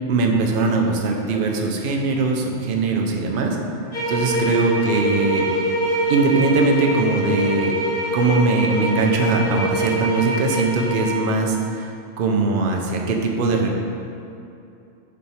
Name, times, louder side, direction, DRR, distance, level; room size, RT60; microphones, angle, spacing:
voice 1, 0.1-3.6 4.1-5.5 6.1-7.7 8.1-11.9 12.2-13.8, right 3 dB, 55° right, 2 dB, 0.7 m, -21 dB
sound 1, 3.9-11.3, right 1 dB, 50° left, 1.2 m, -24 dB
6.9 x 3.2 x 4.3 m, 2.7 s
omnidirectional pair, 1.2 m